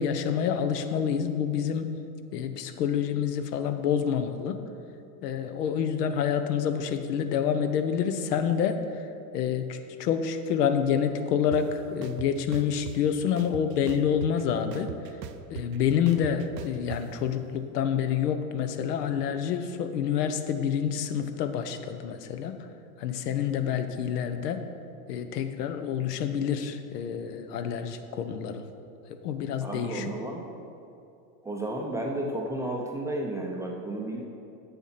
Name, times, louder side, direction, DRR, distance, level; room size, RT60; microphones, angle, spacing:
voice 1, 0.0-1.9 2.3-4.6 5.2-9.1 9.3-14.9 15.5-22.6 23.0-24.6 25.1-28.6 29.1-30.1, left 8 dB, 75° left, 8 dB, 0.9 m, -28 dB
sound 1, 11.5-11.6 12.0-13.0 13.4-14.4 14.7-17.0, right 9 dB, 85° right, 0.7 m, -39 dB
voice 2, 29.6-30.5 31.4-34.2, right 1 dB, 5° right, -1 dB, 0.5 m, -32 dB
7.7 x 7.1 x 5.7 m, 2.6 s
supercardioid pair, 125°, 48 cm